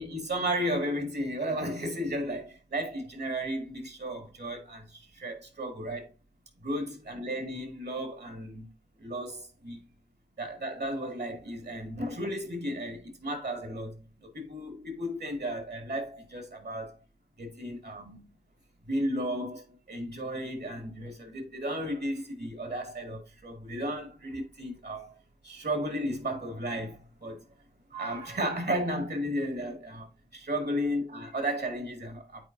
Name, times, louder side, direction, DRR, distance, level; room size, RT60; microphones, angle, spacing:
voice 1, 0.0-6.1 6.6-8.7 9.0-9.8 10.4-17.0 17.4-18.3 18.9-25.2 25.4-27.4 27.9-32.5, equal, 80° right, 1.9 m, -34 dB
8.9 x 4.4 x 2.6 m
wide cardioid pair, 45°, 17 cm